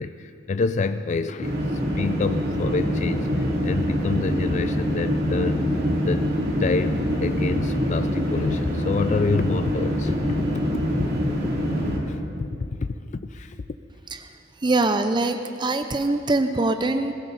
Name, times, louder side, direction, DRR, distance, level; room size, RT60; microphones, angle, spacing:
voice 1, 0.0-5.6 6.0-6.3 6.6-10.7 11.9-13.6, left 4 dB, 40° left, 10 dB, 0.3 m, -28 dB
sound 1, 1.4-12.0, equal, 55° right, 2.7 m, -25 dB
voice 2, 14.1-17.1, right 2 dB, 25° right, 8 dB, 0.5 m, -23 dB
21.0 x 16.0 x 4.0 m, 2.7 s
head